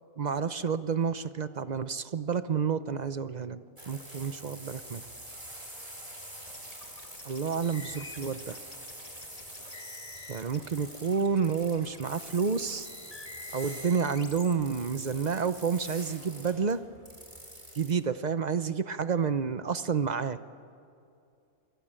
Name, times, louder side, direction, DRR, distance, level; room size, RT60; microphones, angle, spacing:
voice 1, 0.2-5.0 7.2-8.6 10.3-12.9 13.5-16.8 17.7-20.4, right 6 dB, 40° right, 12 dB, 0.6 m, -30 dB
sound 1, 3.8-17.9, right 1 dB, 20° right, 5.6 m, -46 dB
sound 2, 6.5-14.5, left 3 dB, 25° left, 2.0 m, -49 dB
28.5 x 23.0 x 8.9 m, 2.5 s
omnidirectional pair, 1.5 m